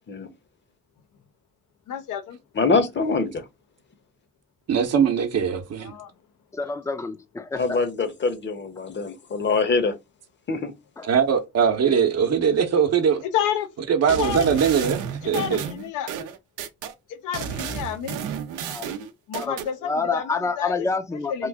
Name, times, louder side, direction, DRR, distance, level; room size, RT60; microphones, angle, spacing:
voice 1, 1.9-2.4 5.8-6.1 13.3-13.7 14.2-14.9 15.3-16.1 17.1-18.2 19.3-20.9 21.3-21.5, left 10 dB, 90° left, 0.7 m, -30 dB
voice 2, 2.5-3.4 7.6-9.9 10.5-10.7, left 4 dB, 40° left, 0.8 m, -24 dB
voice 3, 4.7-5.9 11.1-13.2 13.9-15.6, right 7 dB, 55° right, 0.8 m, -21 dB
voice 4, 6.5-7.8 11.0-11.1 18.7-18.9 19.4-19.6 19.8-21.5, left 4 dB, 10° left, 0.5 m, -28 dB
sound 1, 14.1-16.9 17.3-19.7, right 7 dB, 85° right, 0.6 m, -32 dB
3.1 x 2.4 x 3.5 m
cardioid pair, 90°, 30 cm